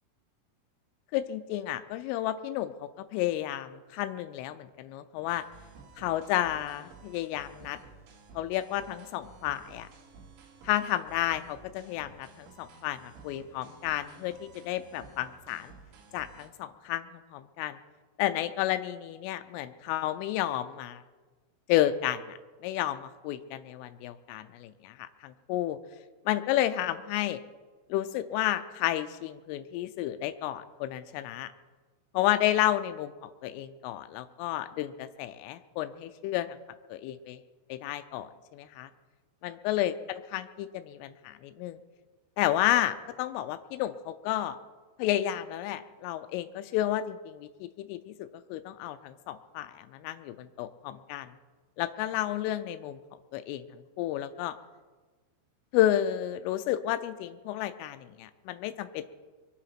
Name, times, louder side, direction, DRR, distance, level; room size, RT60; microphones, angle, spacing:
voice 1, 1.1-5.4 6.0-7.8 8.3-9.9 10.6-15.7 16.1-17.8 18.2-21.0 21.7-25.8 26.3-27.4 27.9-31.5 32.1-36.6 36.9-37.4 37.7-38.9 39.4-41.8 42.4-44.6 45.0-48.1 48.5-51.3 51.8-53.0 53.3-53.6 54.0-54.5 55.7-59.1, left 13 dB, 90° left, 10 dB, 3.2 m, -31 dB
sound 1, 5.3-16.5, right 4 dB, 80° right, 4.4 m, -53 dB
24.0 x 8.7 x 5.8 m, 1.4 s
omnidirectional pair, 5.7 m